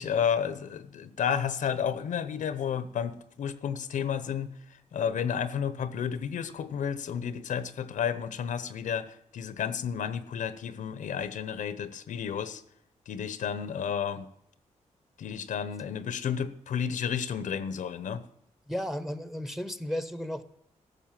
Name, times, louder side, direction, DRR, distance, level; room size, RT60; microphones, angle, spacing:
voice 1, 0.0-12.6 13.1-14.3 15.2-18.2, left 7 dB, 90° left, 14 dB, 0.9 m, -32 dB
voice 2, 18.7-20.4, equal, ahead, 13 dB, 0.8 m, -34 dB
13.5 x 6.8 x 7.5 m, 0.77 s
wide cardioid pair, 115°, 13 cm